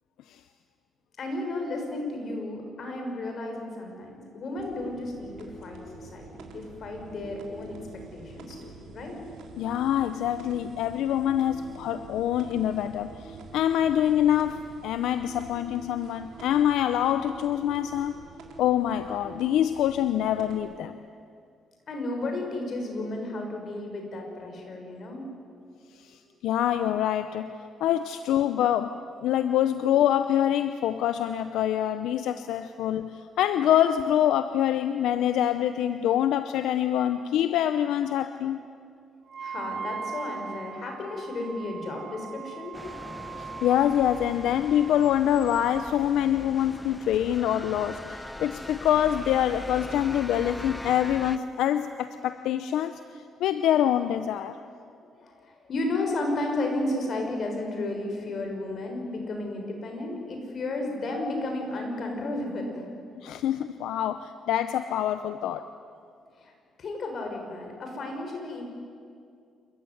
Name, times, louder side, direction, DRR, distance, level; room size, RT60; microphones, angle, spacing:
voice 1, 1.2-7.8 8.1-9.2 21.9-25.7 39.4-42.8 55.2-62.9 66.4-66.5 66.8-68.6, left 2 dB, 55° left, 2 dB, 6.1 m, -33 dB
sound 1, 4.6-20.6, right 3 dB, 80° right, 3.6 m, -46 dB
voice 2, 9.6-18.2 18.6-21.0 26.0-38.6 43.6-53.0 53.4-54.6 63.2-65.7, left 11 dB, 85° left, 10 dB, 0.7 m, -25 dB
Wind instrument woodwind instrument, 39.3-45.2, right 6 dB, 50° right, 1.9 m, -40 dB
sound 2, 42.7-51.4, left 1 dB, 10° left, 1.1 m, -41 dB
28.5 x 14.5 x 9.8 m, 2.3 s
cardioid pair, 90°, 0 cm